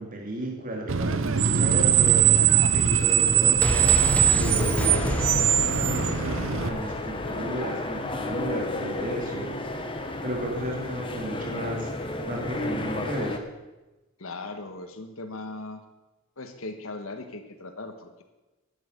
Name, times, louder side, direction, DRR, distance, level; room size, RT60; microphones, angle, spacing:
voice 1, 0.0-4.1 4.3-5.1 5.6-9.9 10.2-13.4, right 1 dB, 40° right, -1 dB, 2.5 m, -34 dB
Screech, 0.9-6.7, right 9 dB, 70° right, 0.7 m, -21 dB
sound 1, 3.6-7.4 7.6-7.7, left 1 dB, 5° left, 0.7 m, -31 dB
sound 2, 3.9-13.4, left 2 dB, 25° left, 1.3 m, -32 dB
voice 2, 14.2-15.8 16.4-18.2, left 2 dB, 90° left, 6 dB, 1.5 m, -38 dB
10.5 x 9.4 x 8.0 m, 1.1 s
head